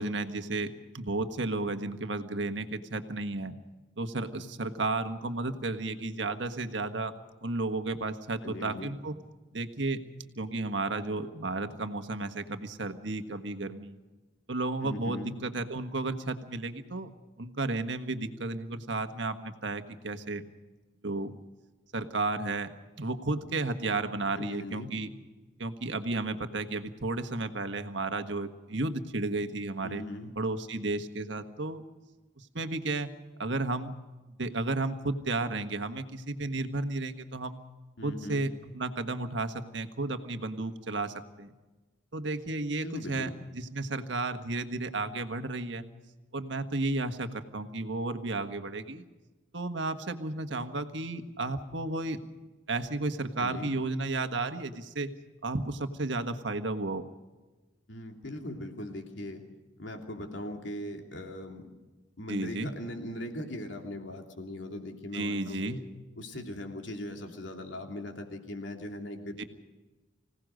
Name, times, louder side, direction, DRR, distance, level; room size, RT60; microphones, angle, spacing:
voice 1, 0.0-3.6 4.0-7.2 7.4-9.1 9.5-10.0 10.4-13.9 14.5-17.1 17.4-20.4 21.0-21.3 21.9-22.7 23.0-25.1 25.6-30.0 30.4-31.8 32.4-33.1 33.4-33.9 34.4-37.6 38.0-41.5 42.1-45.9 46.3-49.1 49.5-52.2 52.7-55.1 55.4-57.1 62.3-62.7 65.1-65.8 69.4-69.5, right 2 dB, 70° right, 8 dB, 1.6 m, -33 dB
voice 2, 8.4-8.9 14.8-15.4 24.3-24.9 29.8-30.3 38.0-38.5 42.8-43.3 53.4-53.7 57.9-59.4 59.8-61.7 62.2-65.8 66.2-69.3, left 1 dB, 75° left, 3 dB, 3.0 m, -39 dB
25.5 x 17.5 x 6.5 m, 1.2 s
head